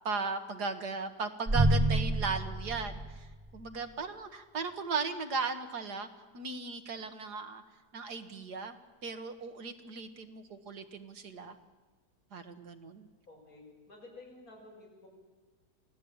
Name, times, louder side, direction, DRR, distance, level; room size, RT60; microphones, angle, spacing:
voice 1, 0.0-6.1 6.3-7.6 7.9-8.8 9.0-11.6 12.3-13.1, right 4 dB, 80° right, 8 dB, 2.2 m, -37 dB
sound 1, 1.5-3.7, right 1 dB, 20° right, 0.9 m, -29 dB
voice 2, 13.3-15.1, left 2 dB, 60° left, -1 dB, 7.4 m, -52 dB
27.5 x 17.0 x 8.8 m, 1.3 s
omnidirectional pair, 1.7 m